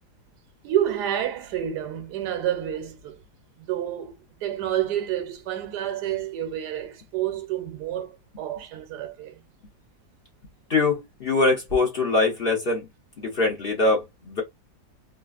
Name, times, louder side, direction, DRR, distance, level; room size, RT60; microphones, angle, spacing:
voice 1, 0.6-3.2 3.6-9.4, right 11 dB, 85° right, 1.3 m, -29 dB
voice 2, 10.7-12.9 13.2-14.4, left 3 dB, 45° left, 0.8 m, -23 dB
3.1 x 2.3 x 2.3 m
omnidirectional pair, 1.7 m